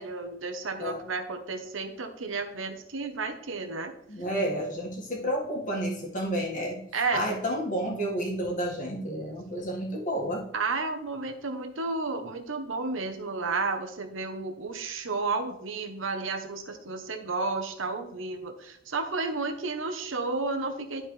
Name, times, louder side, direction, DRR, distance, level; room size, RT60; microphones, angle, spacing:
voice 1, 0.0-3.9 6.9-7.2 10.5-21.1, right 3 dB, 75° right, 6 dB, 1.0 m, -32 dB
voice 2, 4.1-6.8 7.1-10.5, equal, 40° left, -1 dB, 1.8 m, -30 dB
11.5 x 4.4 x 3.3 m, 0.73 s
head